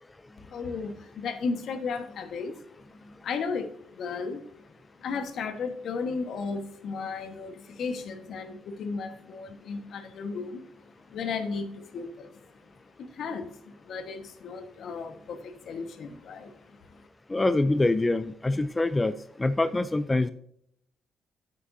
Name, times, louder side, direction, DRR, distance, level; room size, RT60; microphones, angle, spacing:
voice 1, 0.4-2.6 3.2-4.4 5.0-10.6 11.0-12.6 13.0-16.5 16.9-17.1, left 4 dB, 65° left, 8 dB, 1.3 m, -35 dB
voice 2, 17.3-20.3, left 2 dB, 20° left, 13 dB, 0.4 m, -25 dB
9.6 x 8.3 x 2.7 m, 0.71 s
cardioid pair, 90°, 0 cm